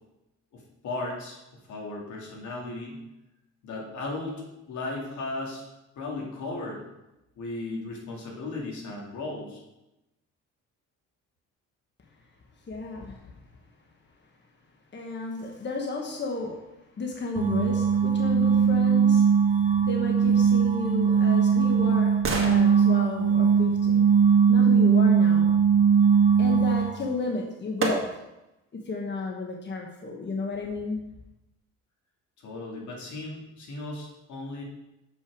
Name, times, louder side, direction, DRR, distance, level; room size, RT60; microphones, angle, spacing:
voice 1, 0.5-1.4 1.7-3.0 3.6-5.6 6.0-6.8 7.4-9.6 32.4-34.6, left 2 dB, 75° left, -1 dB, 2.3 m, -36 dB
voice 2, 12.7-13.2 14.9-16.6 17.0-19.2 19.8-22.1 22.4-24.1 24.5-25.6 26.4-28.1 28.9-31.0, left 3 dB, 35° left, 1 dB, 1.3 m, -32 dB
sound 1, 17.4-27.1, right 6 dB, 25° right, 0.7 m, -20 dB
sound 2, 20.9-24.8 26.9-27.0 27.8-28.5 29.0-29.1, right 3 dB, 45° right, 1.7 m, -35 dB
7.0 x 5.9 x 4.7 m, 0.94 s
cardioid pair, 90°, 30 cm